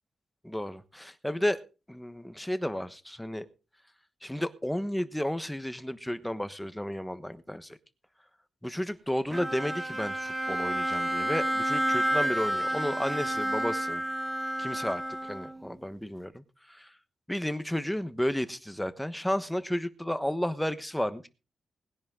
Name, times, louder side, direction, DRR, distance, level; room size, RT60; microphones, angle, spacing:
voice 1, 0.4-1.6 1.9-3.5 4.2-7.8 8.6-14.0 14.6-16.9 17.3-21.3, equal, 5° left, 12 dB, 1.2 m, -32 dB
Bowed string instrument, 9.3-15.7, right 1 dB, 15° right, 2.5 m, -30 dB
20.0 x 10.5 x 3.8 m, 0.33 s
wide cardioid pair, 115°, 0 cm